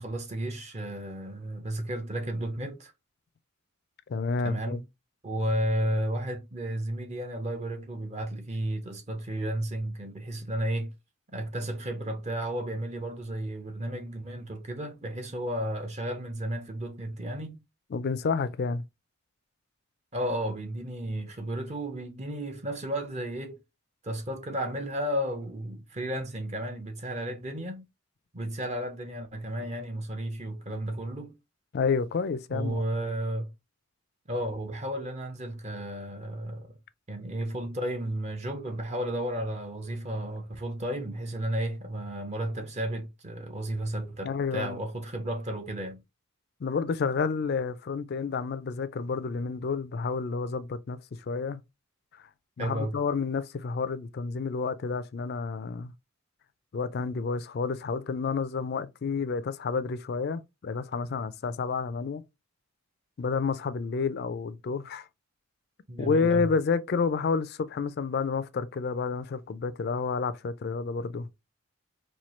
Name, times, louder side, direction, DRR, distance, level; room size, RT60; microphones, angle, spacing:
voice 1, 0.0-2.9 4.4-4.8 5.2-10.9 11.3-17.6 20.1-23.6 24.0-27.8 28.3-31.3 32.5-33.5 34.3-36.7 37.1-46.0 52.6-52.9 65.9-66.5, right 1 dB, 30° right, 0.6 m, -33 dB
voice 2, 4.1-4.8 17.9-18.8 31.7-32.8 44.2-44.8 46.6-51.0 51.3-51.6 52.6-55.9 56.7-62.2 63.2-65.1 66.0-71.3, left 5 dB, 50° left, 0.3 m, -30 dB
4.3 x 2.3 x 3.0 m
head